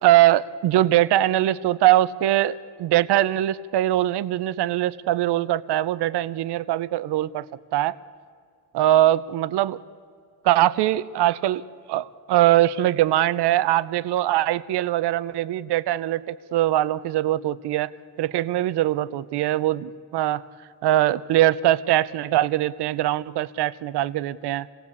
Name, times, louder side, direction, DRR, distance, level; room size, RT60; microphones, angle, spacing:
voice 1, 0.0-7.5 7.7-8.0 8.7-9.8 10.4-11.6 11.9-17.9 18.2-20.4 20.8-24.7, right 14 dB, 70° right, 17 dB, 0.8 m, -22 dB
27.5 x 19.0 x 8.5 m, 2.2 s
cardioid pair, 165°, 42 cm